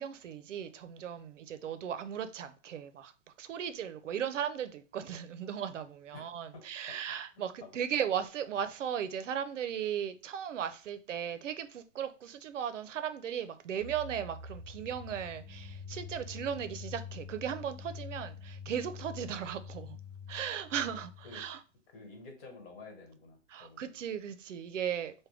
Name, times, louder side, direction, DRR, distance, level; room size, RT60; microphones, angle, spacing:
voice 1, 0.0-3.1 3.4-20.0 20.3-21.6 23.5-25.1, right 9 dB, 85° right, 0.5 m, -37 dB
voice 2, 6.5-7.0 7.3-7.8 20.8-20.9 21.2-21.4 21.9-24.0, left 3 dB, 50° left, 1.4 m, -51 dB
sound 1, 13.8-21.6, left 5 dB, 35° right, 0.5 m, -46 dB
3.5 x 2.2 x 3.3 m
hypercardioid pair, 125°, 36 cm